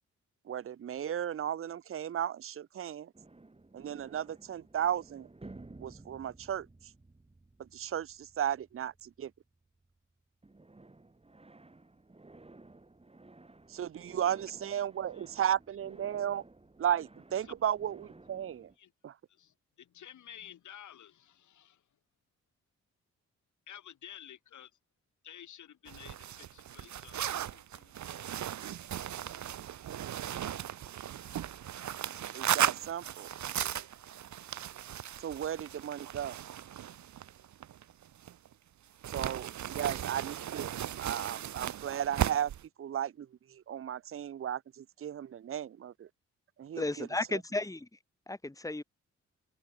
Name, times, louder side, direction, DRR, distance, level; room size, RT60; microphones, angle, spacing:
voice 1, 0.5-3.1 3.7-5.3 5.8-6.7 7.6-9.3 13.7-16.4 16.8-18.7 19.0-19.2 32.3-33.3 35.2-36.4 39.1-42.5 42.8-46.1 46.6-47.1, right 10 dB, 50° right, 0.7 m, -35 dB
sound 1, 3.1-10.1 10.4-18.8, right 2 dB, 20° right, 4.6 m, -55 dB
voice 2, 19.4-21.8 23.7-24.7 25.2-27.2 27.4-27.9, left 10 dB, 80° left, 3.7 m, -51 dB
sound 2, 25.9-38.5 39.0-42.6, right 11 dB, 75° right, 1.3 m, -36 dB
voice 3, 46.8-47.9 48.3-48.8, left 2 dB, 10° left, 2.1 m, -34 dB
cardioid pair, 80°, 29 cm